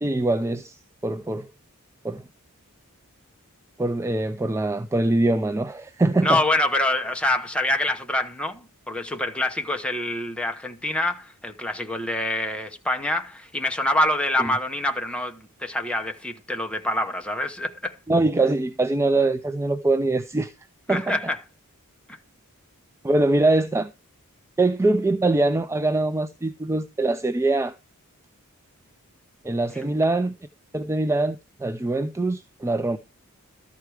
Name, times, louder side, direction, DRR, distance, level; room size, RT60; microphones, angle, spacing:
voice 1, 0.0-1.5 2.0-2.2 3.8-6.4 14.4-14.5 18.1-20.5 20.9-21.2 23.0-23.9 24.6-27.7 29.4-30.3 30.7-33.0, right 2 dB, 10° right, 0.4 m, -23 dB
voice 2, 6.2-18.0 20.9-21.4 22.1-22.2 29.7-29.9, left 1 dB, 5° left, 1.0 m, -26 dB
13.0 x 4.6 x 4.9 m
head